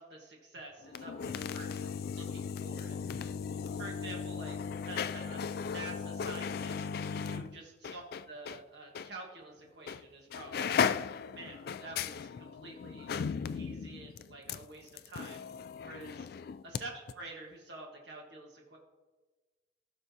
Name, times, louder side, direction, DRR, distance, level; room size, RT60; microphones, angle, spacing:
voice 1, 0.0-3.0 3.7-4.6 4.9-10.9 11.3-13.1 13.5-15.4 15.8-16.3 16.6-18.8, right 2 dB, 65° right, -1 dB, 1.5 m, -48 dB
sound 1, 0.8-8.6 9.0-9.1 9.9-10.1 10.3-16.8 17.1-17.2, left 6 dB, 55° left, 0.3 m, -36 dB
16.5 x 6.4 x 2.8 m, 1.2 s
head